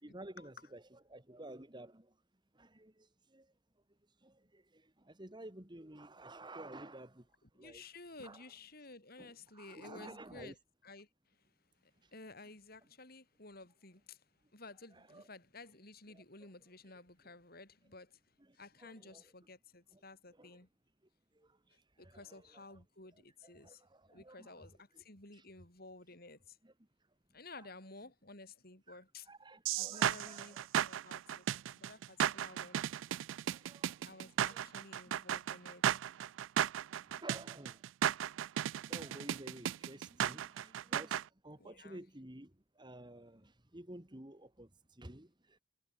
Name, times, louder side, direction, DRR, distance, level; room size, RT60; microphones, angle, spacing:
voice 1, 0.0-2.1 2.5-3.5 4.2-7.3 7.5-7.9 8.2-8.4 9.2-10.5 15.0-15.3 16.1-16.2 18.5-19.2 19.9-20.0 20.4-20.5 21.3-21.8 22.0-22.8 23.4-24.7 24.9-25.0 26.6-26.7 27.6-27.7 28.9-29.0 29.3-30.6 33.5-34.7 35.0-35.1 36.7-37.8 38.8-45.6, right 1 dB, 25° right, 2.3 m, -53 dB
voice 2, 7.4-10.6 10.8-11.1 12.1-14.2 14.5-18.1 18.6-20.7 22.0-23.8 24.1-24.8 25.1-26.4 27.3-29.3 29.8-31.4 31.8-32.8 34.0-35.8 41.6-42.0, left 3 dB, 50° left, 7.1 m, -54 dB
sound 1, 29.7-41.2, right 10 dB, 85° right, 0.3 m, -35 dB
head